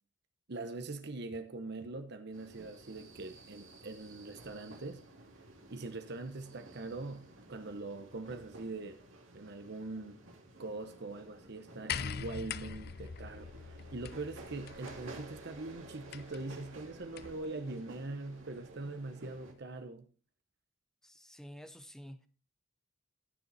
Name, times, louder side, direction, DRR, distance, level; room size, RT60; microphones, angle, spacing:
voice 1, 0.5-5.0 5.7-9.0 9.3-10.2 10.6-20.1, right 2 dB, 55° right, 0.9 m, -42 dB
sound 1, 2.3-19.5, right 2 dB, 80° right, 2.5 m, -53 dB
sound 2, 11.9-17.5 18.6-18.7, left 7 dB, 55° left, 0.5 m, -43 dB
voice 2, 21.0-22.3, equal, 5° left, 0.7 m, -50 dB
16.0 x 6.9 x 4.2 m
head